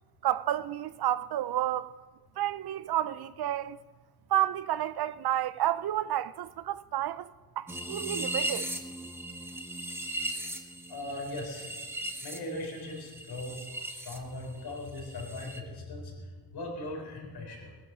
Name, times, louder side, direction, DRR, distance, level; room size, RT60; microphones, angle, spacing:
voice 1, 0.2-2.0 2.4-3.8 4.3-8.7, right 12 dB, 70° right, 0.5 m, -30 dB
sound 1, 7.7-14.2 14.4-15.6, right 1 dB, 5° right, 0.8 m, -38 dB
voice 2, 10.9-11.7 12.2-17.7, left 1 dB, 70° left, 4.2 m, -39 dB
19.0 x 9.9 x 6.2 m
wide cardioid pair, 175°, 39 cm